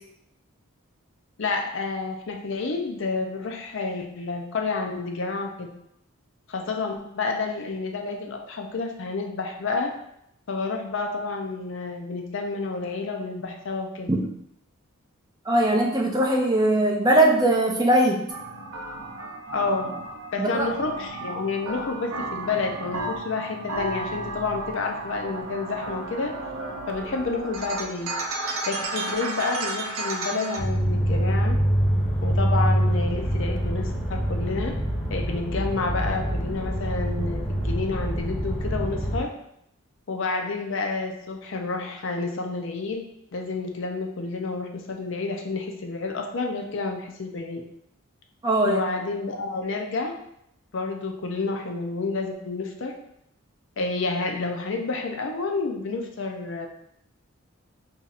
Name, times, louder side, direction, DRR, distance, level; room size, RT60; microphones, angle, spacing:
voice 1, 1.4-5.7 6.5-9.9 10.5-14.1 19.5-19.9 20.3-26.3 26.9-28.1 28.7-31.6 32.2-34.7 35.1-39.3 40.1-43.0 43.3-47.6 48.6-50.1 50.7-53.0 53.8-56.7, left 3 dB, 60° left, 3 dB, 0.5 m, -29 dB
voice 2, 15.5-18.2 20.4-20.7 48.4-48.8, right 1 dB, 20° right, -1 dB, 0.5 m, -20 dB
sound 1, 18.3-30.6, right 2 dB, 80° right, 0.6 m, -33 dB
sound 2, 30.6-39.2, equal, 35° left, 0.9 m, -25 dB
5.6 x 2.8 x 2.4 m, 0.76 s
head